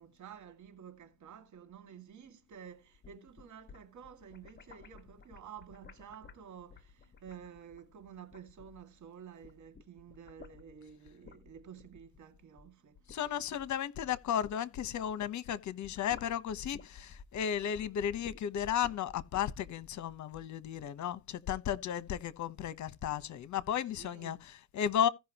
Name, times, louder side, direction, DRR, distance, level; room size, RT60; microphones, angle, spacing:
voice 1, 0.0-13.2 23.9-24.4, right 8 dB, 70° right, 2.4 m, -51 dB
sound 1, 2.8-9.0 9.3-15.4 15.7-20.5, left 5 dB, 35° left, 1.5 m, -55 dB
voice 2, 13.1-25.1, left 9 dB, 70° left, 1.0 m, -34 dB
16.5 x 5.7 x 3.0 m
cardioid pair, 90°, 30 cm